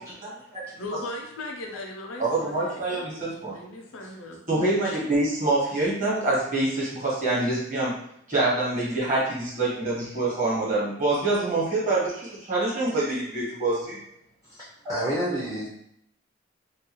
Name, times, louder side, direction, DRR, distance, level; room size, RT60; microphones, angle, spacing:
voice 1, 0.8-2.9 3.3-4.4, left 1 dB, 80° left, 1 dB, 0.6 m, -38 dB
voice 2, 2.2-3.5 4.5-7.9 8.3-14.0, right 2 dB, 40° right, -6 dB, 1.1 m, -25 dB
voice 3, 14.4-15.7, equal, 15° right, -8 dB, 0.4 m, -29 dB
2.4 x 2.3 x 2.9 m, 0.74 s
head